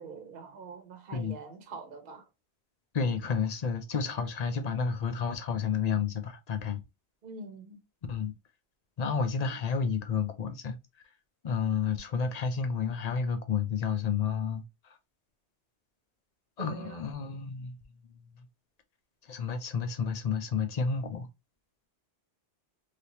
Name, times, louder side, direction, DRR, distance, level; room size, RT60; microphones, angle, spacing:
voice 1, 0.0-2.2 7.2-7.8 16.6-17.0, right 4 dB, 50° right, 0.9 m, -44 dB
voice 2, 2.9-6.8 8.1-8.3 9.0-10.8 11.4-14.6 16.6-17.8 19.3-21.3, left 6 dB, 45° left, 0.6 m, -30 dB
3.4 x 2.8 x 2.9 m
omnidirectional pair, 1.2 m